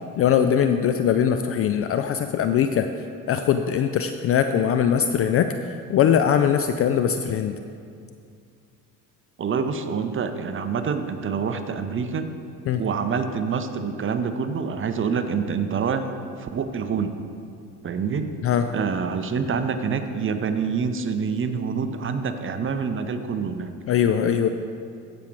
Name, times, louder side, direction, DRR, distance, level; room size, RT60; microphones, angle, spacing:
voice 1, 0.2-2.9 3.3-7.6 12.7-12.8 18.4-18.6 23.9-24.5, left 8 dB, 35° left, 8 dB, 0.4 m, -21 dB
voice 2, 9.4-12.3 12.8-16.1 16.4-17.1 17.8-18.3 18.7-23.7, right 6 dB, 25° right, 9 dB, 0.7 m, -26 dB
15.0 x 5.3 x 4.6 m, 2.3 s
hypercardioid pair, 60°, 46 cm